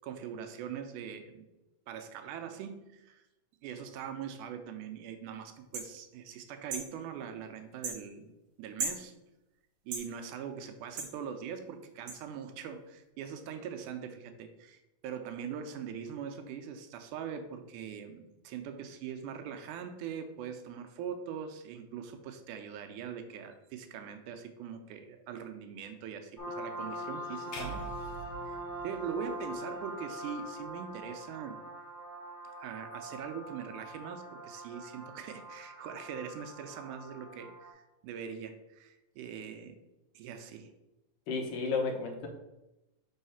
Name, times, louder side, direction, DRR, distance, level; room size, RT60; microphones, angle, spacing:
voice 1, 0.0-1.4 1.9-3.2 3.6-8.3 8.6-9.1 9.9-27.9 28.5-28.6 28.8-31.6 32.6-39.8 40.2-40.7, right 8 dB, 85° right, 7 dB, 2.1 m, -42 dB
sound 1, 5.7-5.9 6.7-6.9 7.8-8.0 8.8-9.0 9.9-10.1 11.0-11.1 12.1-12.2, right 4 dB, 60° right, 1.5 m, -35 dB
sound 2, 26.4-37.7, equal, ahead, 0.9 m, -43 dB
sound 3, 27.5-29.8, right 1 dB, 60° left, 1.5 m, -44 dB
voice 2, 41.3-42.3, left 4 dB, 90° left, 3 dB, 2.5 m, -32 dB
5.5 x 3.2 x 5.6 m, 0.95 s
omnidirectional pair, 3.6 m